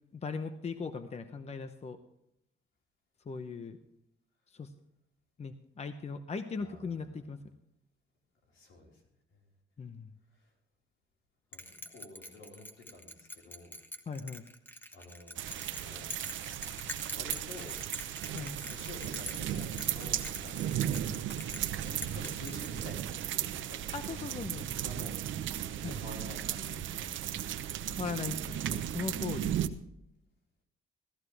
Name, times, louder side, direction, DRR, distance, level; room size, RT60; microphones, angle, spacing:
voice 1, 0.1-2.0 3.3-3.8 4.5-4.7 5.4-7.4 9.8-10.1 14.1-14.4 18.3-18.6 23.9-24.7 25.8-26.0 27.9-29.5, left 5 dB, 35° left, 10 dB, 0.8 m, -39 dB
voice 2, 6.6-7.0 8.5-9.0 9.3-9.4 10.3-10.5 11.5-11.6 11.9-13.7 14.9-16.1 16.4-17.8 18.7-21.3 21.6-23.8 24.1-27.4, left 2 dB, 75° left, -1 dB, 4.5 m, -50 dB
Bell, 11.5-23.2, left 1 dB, 10° left, 1.4 m, -45 dB
sound 1, 15.4-29.7, right 11 dB, 75° right, 0.8 m, -36 dB
16.0 x 14.0 x 3.4 m, 0.79 s
cardioid pair, 90°, 20 cm